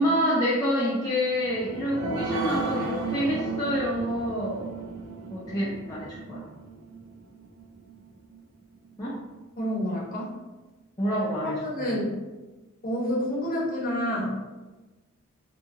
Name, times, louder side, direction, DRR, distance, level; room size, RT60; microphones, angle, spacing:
voice 1, 0.0-4.6 5.3-6.5 9.0-9.2 11.0-11.9, equal, 15° left, -8 dB, 0.4 m, -27 dB
sound 1, 1.3-8.4 8.9-9.0 9.3-9.4, right 3 dB, 75° right, 0.4 m, -34 dB
voice 2, 9.6-10.3 11.4-12.1 12.8-14.4, equal, 40° left, -4 dB, 0.7 m, -28 dB
2.7 x 2.3 x 2.7 m, 1.1 s
head